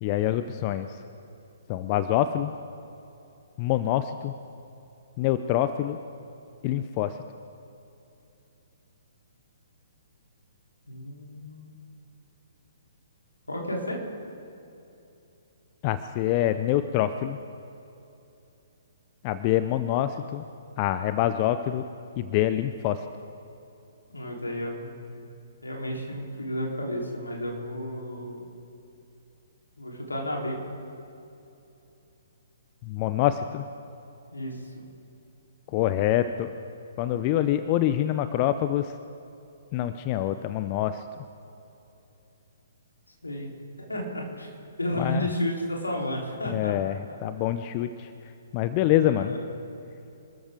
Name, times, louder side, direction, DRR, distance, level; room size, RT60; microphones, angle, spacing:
voice 1, 0.0-0.9 1.7-2.5 3.6-4.3 5.2-6.0 6.6-7.1 15.8-17.4 19.2-20.4 20.8-21.8 22.2-23.0 32.8-33.6 35.7-36.5 37.0-38.9 39.7-41.0 45.0-45.3 46.5-48.1 48.5-49.3, left 12 dB, 30° left, 11 dB, 0.6 m, -25 dB
voice 2, 10.9-11.7 13.5-14.0 24.1-25.0 25.6-28.6 29.8-30.6 34.3-34.7 43.2-43.5 43.8-44.5 44.8-46.8 48.8-49.4, left 1 dB, 80° left, -2 dB, 4.1 m, -32 dB
27.0 x 13.5 x 3.9 m, 2.8 s
figure-of-eight pair, 125°, 0 cm